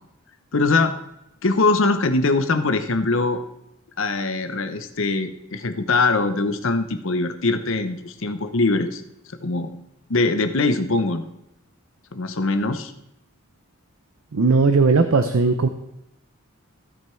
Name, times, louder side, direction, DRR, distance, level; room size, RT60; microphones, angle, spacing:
voice 1, 0.5-0.9 1.4-3.4 4.0-9.0 9.4-9.7 10.1-11.3 12.1-12.9, left 3 dB, 60° left, 9 dB, 0.8 m, -22 dB
voice 2, 14.3-15.7, right 4 dB, 65° right, 9 dB, 0.6 m, -17 dB
15.5 x 5.3 x 4.5 m, 0.86 s
head